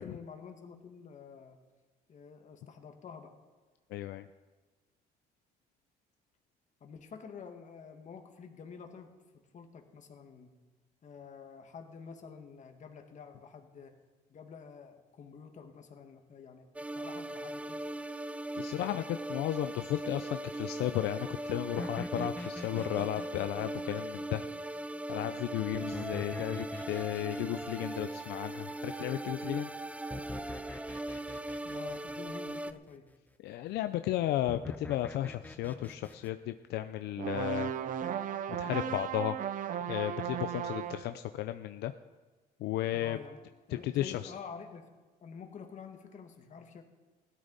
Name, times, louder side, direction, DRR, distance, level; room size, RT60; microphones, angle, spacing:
voice 1, 0.0-1.6 2.1-3.3 6.8-10.5 11.0-14.0 14.3-16.7 16.9-17.8 31.6-33.1 42.9-43.4 43.7-44.9 45.2-46.8, left 6 dB, 45° left, 5 dB, 1.8 m, -48 dB
voice 2, 3.9-4.3 18.5-24.4 25.1-29.7 33.4-37.7 38.6-39.4 39.9-41.9 42.6-43.2 43.7-44.3, left 13 dB, 80° left, 10 dB, 0.5 m, -34 dB
sound 1, 16.7-32.7, right 1 dB, 10° right, 0.4 m, -39 dB
sound 2, 21.8-24.6 25.7-29.2 30.1-32.8 34.5-36.3, left 2 dB, 10° left, 0.8 m, -44 dB
sound 3, 37.2-41.1, right 9 dB, 55° right, 0.7 m, -35 dB
16.5 x 12.5 x 4.1 m, 1.3 s
cardioid pair, 110°, 17 cm